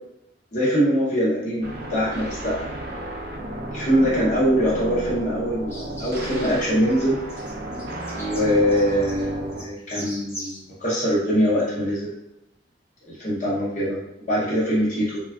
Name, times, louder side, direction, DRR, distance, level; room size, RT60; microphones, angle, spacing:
voice 1, 0.5-2.7 3.7-7.2 8.1-12.1 13.1-15.2, equal, 40° left, -7 dB, 0.8 m, -23 dB
sound 1, 1.6-9.6, right 1 dB, 55° right, 0.5 m, -33 dB
sound 2, 5.7-6.5 6.8-6.9 7.3-10.6, left 1 dB, 15° left, 0.6 m, -40 dB
3.2 x 2.3 x 2.4 m, 0.86 s
head